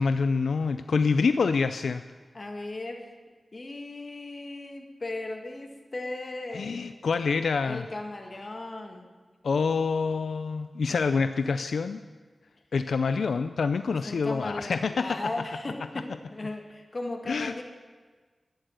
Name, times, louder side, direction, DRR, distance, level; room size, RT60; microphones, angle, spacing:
voice 1, 0.0-2.0 6.5-7.8 9.4-12.0 12.7-15.2 17.3-17.5, left 4 dB, 90° left, 10 dB, 0.3 m, -26 dB
voice 2, 2.3-3.0 3.5-6.8 7.6-9.1 10.9-11.3 13.9-17.6, left 2 dB, 45° left, 3 dB, 1.7 m, -37 dB
11.5 x 10.5 x 6.4 m, 1.4 s
wide cardioid pair, 65°, 0 cm